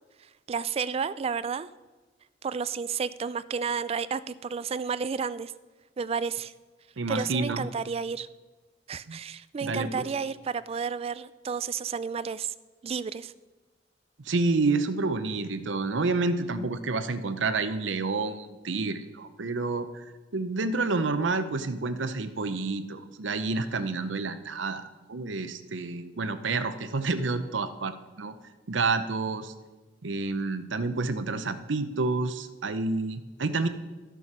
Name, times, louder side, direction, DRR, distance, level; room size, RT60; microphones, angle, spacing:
voice 1, 0.5-1.7 2.4-5.5 6.0-6.5 7.1-8.3 8.9-12.5 12.8-13.3, right 6 dB, 35° right, 16 dB, 0.3 m, -31 dB
voice 2, 7.0-7.7 9.1-9.2 9.6-10.1 14.2-28.3 28.7-29.5 30.0-33.7, right 3 dB, 80° right, 11 dB, 0.7 m, -29 dB
12.5 x 6.9 x 5.9 m, 1.2 s
head